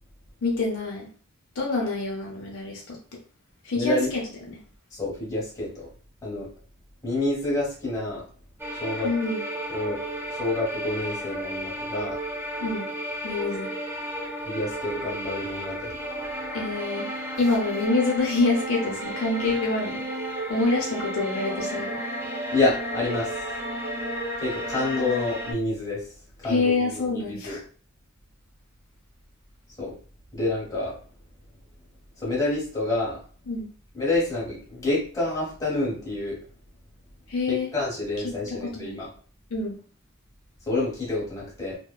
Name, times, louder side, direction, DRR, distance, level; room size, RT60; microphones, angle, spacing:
voice 1, 0.4-1.1 1.6-3.2 3.6-4.6 9.0-9.4 12.6-12.9 13.2-13.7 16.5-17.1 17.4-20.1 20.5-22.0 26.4-27.6 33.5-33.7 37.3-37.7 38.2-38.3 38.6-39.0 39.5-39.8, left 3 dB, 70° left, -2 dB, 0.7 m, -26 dB
voice 2, 3.7-4.1 4.9-5.9 6.2-6.5 7.0-8.2 8.7-9.1 9.7-10.0 10.3-12.2 14.4-16.0 22.5-23.3 24.4-26.0 26.4-27.6 29.8-29.9 30.3-31.0 32.2-33.2 33.9-36.4 37.5-39.1 40.7-41.8, left 2 dB, 15° left, -6 dB, 1.1 m, -28 dB
sound 1, 8.6-25.5, right 1 dB, 10° right, 0.4 m, -33 dB
2.8 x 2.2 x 2.2 m, 0.40 s
head